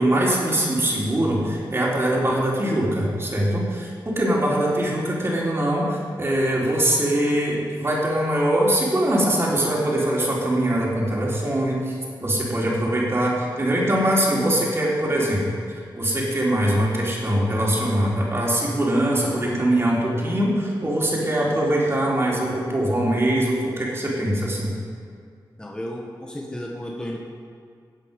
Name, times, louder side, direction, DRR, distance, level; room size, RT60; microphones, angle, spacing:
voice 1, 0.0-15.4 16.0-24.7, right 1 dB, 30° right, -4 dB, 3.8 m, -22 dB
voice 2, 25.6-27.2, equal, 10° left, -2 dB, 1.6 m, -33 dB
16.5 x 8.2 x 5.4 m, 2.2 s
cardioid pair, 80°, 8 cm